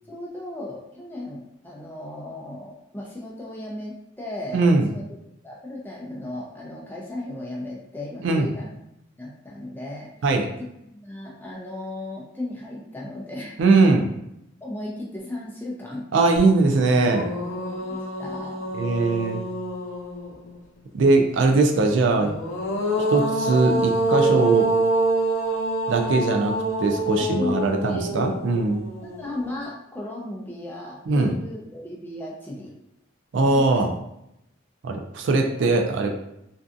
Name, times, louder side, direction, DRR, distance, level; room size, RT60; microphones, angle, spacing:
voice 1, 0.1-5.0 5.4-8.7 9.2-10.1 10.9-13.6 14.6-16.1 17.5-18.6 27.2-28.1 29.0-32.7 33.4-33.8, left 1 dB, 10° left, -3 dB, 0.4 m, -35 dB
voice 2, 4.5-4.9 8.2-8.5 10.2-10.5 13.6-14.1 16.1-17.3 18.7-19.4 20.9-22.3 23.1-24.7 25.9-28.8 31.1-31.3 33.3-33.9 34.8-36.1, right 3 dB, 65° right, 3 dB, 0.3 m, -20 dB
sound 1, 16.4-16.5 16.8-20.5 22.2-29.4, right 1 dB, 90° left, 0.5 m, -26 dB
2.6 x 2.3 x 2.4 m, 0.80 s
head